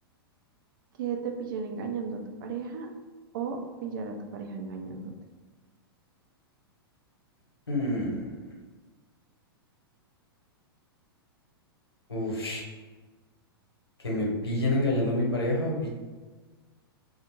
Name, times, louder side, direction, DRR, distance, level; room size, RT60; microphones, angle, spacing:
voice 1, 1.0-2.9 3.3-5.1, right 5 dB, 55° right, 3 dB, 0.4 m, -34 dB
voice 2, 7.7-8.4 12.1-12.6 14.0-15.9, left 1 dB, 85° left, -3 dB, 0.8 m, -28 dB
2.4 x 2.0 x 3.0 m, 1.4 s
figure-of-eight pair, 105°, 13 cm